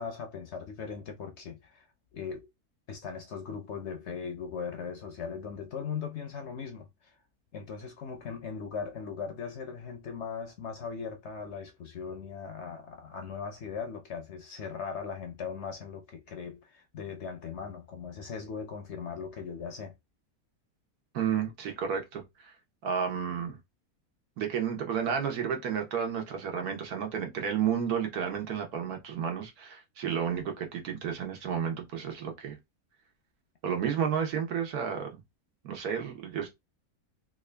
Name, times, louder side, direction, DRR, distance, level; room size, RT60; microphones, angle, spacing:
voice 1, 0.0-2.5 2.9-7.2 7.5-19.9, left 6 dB, 60° left, 0.7 m, -39 dB
voice 2, 21.1-22.5 22.8-23.6 24.4-32.6 33.6-35.1 35.6-36.5, right 7 dB, 80° right, 1.4 m, -31 dB
3.4 x 2.4 x 3.3 m
omnidirectional pair, 1.6 m